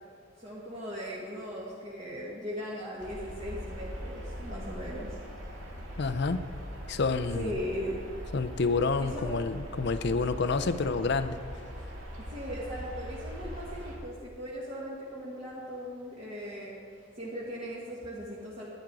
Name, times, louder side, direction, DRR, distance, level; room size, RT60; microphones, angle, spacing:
voice 1, 0.4-5.2 7.3-8.0 9.0-9.4 12.2-16.7 17.2-18.7, equal, 35° right, -8 dB, 1.8 m, -38 dB
sound 1, 3.0-14.0, equal, 75° right, 2.3 m, -41 dB
voice 2, 6.0-6.4 6.9-7.6 8.3-11.4, left 4 dB, 55° left, 12 dB, 0.5 m, -28 dB
11.5 x 10.0 x 4.8 m, 2.4 s
head